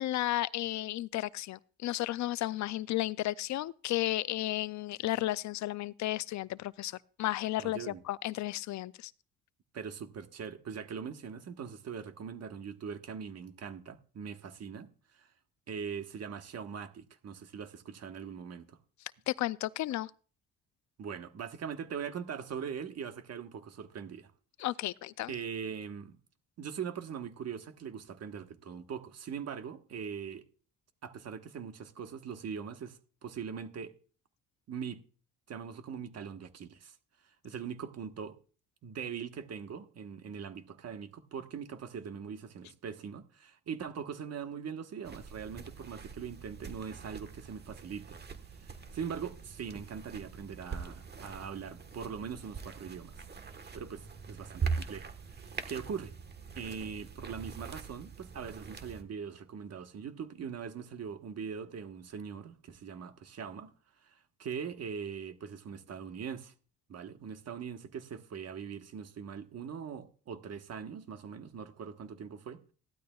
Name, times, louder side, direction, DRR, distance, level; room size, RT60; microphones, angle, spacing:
voice 1, 0.0-9.1 19.3-20.1 24.6-25.3, left 15 dB, 70° left, 0.5 m, -33 dB
voice 2, 7.6-8.0 9.7-14.9 15.1-15.3 15.7-18.8 21.0-24.3 25.3-26.2 26.6-30.4 31.0-33.9 34.7-35.0 35.5-37.0 37.4-38.4 38.8-48.2 48.6-53.2 53.7-55.1 55.7-56.1 56.6-63.7 64.0-66.5 66.9-72.6, right 7 dB, 55° right, 1.3 m, -41 dB
sound 1, 45.0-59.0, right 5 dB, 35° right, 1.3 m, -42 dB
15.0 x 12.0 x 2.3 m
cardioid pair, 90°, 30 cm